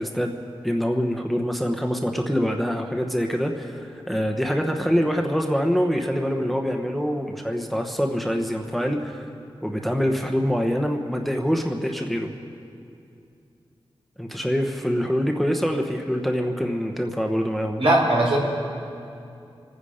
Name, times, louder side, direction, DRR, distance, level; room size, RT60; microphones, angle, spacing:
voice 1, 0.0-9.2 9.6-12.3 14.2-17.8, equal, ahead, 3 dB, 1.1 m, -25 dB
voice 2, 17.8-18.4, right 1 dB, 75° right, -3 dB, 4.4 m, -19 dB
27.5 x 9.8 x 5.0 m, 2.6 s
wide cardioid pair, 95°, 10 cm